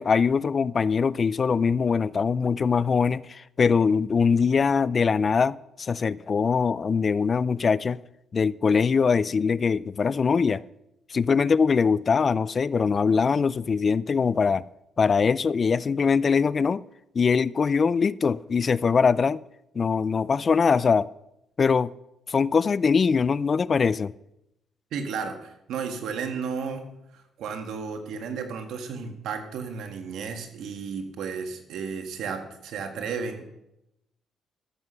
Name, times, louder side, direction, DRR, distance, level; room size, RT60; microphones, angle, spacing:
voice 1, 0.0-8.0 8.3-10.6 11.1-14.6 15.0-16.8 17.1-19.4 19.8-21.1 21.6-21.9 22.3-24.1, left 5 dB, 40° left, 0.3 m, -22 dB
voice 2, 24.9-26.9 27.1-33.5, right 5 dB, 80° right, 1.7 m, -33 dB
14.0 x 7.9 x 5.7 m
cardioid pair, 90°, 0 cm